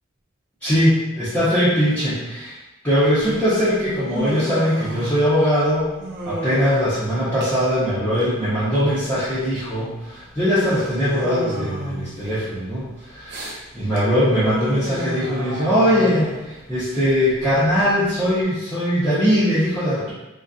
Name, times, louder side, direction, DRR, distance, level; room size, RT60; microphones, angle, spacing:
voice 1, 0.6-2.6 2.8-5.9 6.3-20.1, equal, 10° left, -14 dB, 0.6 m, -21 dB
Human voice, 3.2-18.4, right 1 dB, 55° right, 0.5 m, -33 dB
2.4 x 2.2 x 2.4 m, 1.0 s
head